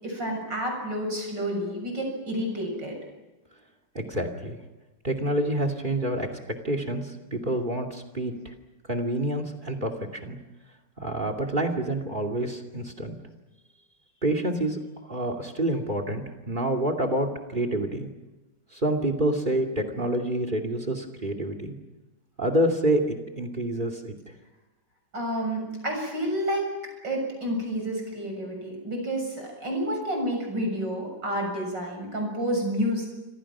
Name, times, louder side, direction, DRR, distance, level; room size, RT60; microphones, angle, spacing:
voice 1, 0.0-3.0 25.1-26.7 27.0-33.1, equal, 85° right, 2 dB, 7.7 m, -29 dB
voice 2, 3.9-4.6 5.0-6.3 6.6-8.5 8.9-10.4 11.0-13.2 14.2-14.8 15.1-18.1 18.7-21.7 22.4-24.2, right 1 dB, 25° right, 8 dB, 2.7 m, -27 dB
29.0 x 25.5 x 6.1 m, 1.1 s
omnidirectional pair, 1.9 m